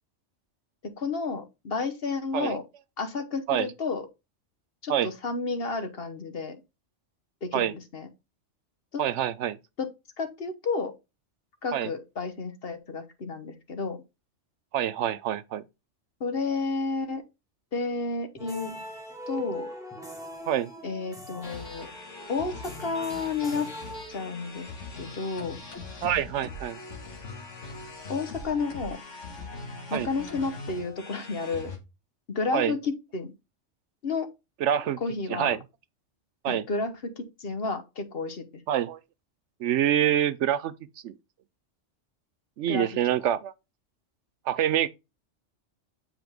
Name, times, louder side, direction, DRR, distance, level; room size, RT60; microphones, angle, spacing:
voice 1, 0.8-2.6 3.0-4.1 4.8-6.6 7.4-8.1 8.9-9.0 9.8-9.9 10.2-10.9 11.6-14.0 16.2-17.2 17.7-18.8 19.3-19.7 20.8-21.9 22.3-23.7 24.1-24.7 25.0-25.6 28.1-29.0 29.9-31.7 32.3-33.3 34.0-34.3 35.0-35.6 36.5-38.5 42.7-42.9, left 4 dB, 50° left, 1.3 m, -31 dB
voice 2, 9.0-9.6 11.7-11.9 14.7-15.6 20.5-20.7 26.0-26.8 29.9-30.1 32.5-32.7 34.6-35.0 35.3-35.6 36.4-36.6 38.7-39.0 39.6-40.7 41.0-41.1 42.6-43.5 44.5-44.9, right 10 dB, 75° right, 0.9 m, -26 dB
sound 1, 18.4-24.6, equal, 5° right, 1.7 m, -41 dB
sound 2, 21.4-31.8, left 3 dB, 75° left, 1.9 m, -41 dB
7.7 x 4.8 x 3.5 m
omnidirectional pair, 1.3 m